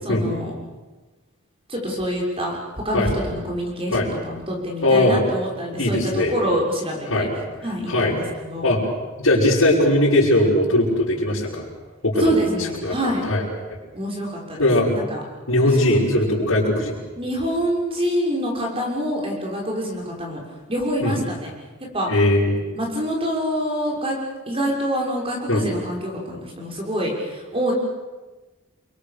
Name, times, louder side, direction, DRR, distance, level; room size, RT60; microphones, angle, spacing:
voice 1, 0.0-0.5 1.7-7.3 7.6-8.7 12.2-13.3 13.9-15.2 15.9-16.0 17.2-20.4 20.7-21.5 21.9-22.1 22.7-24.2 24.5-27.7, equal, 25° right, -1 dB, 6.3 m, -26 dB
voice 2, 4.8-5.2 5.8-6.3 7.1-7.3 7.9-8.1 8.6-8.8 9.2-11.6 12.0-12.4 12.8-12.9 13.2-13.4 14.6-14.9 15.5-17.0 21.0-21.1 22.1-22.5 25.5-25.6, left 1 dB, 85° left, -10 dB, 6.5 m, -19 dB
29.5 x 23.5 x 6.9 m, 1.2 s
head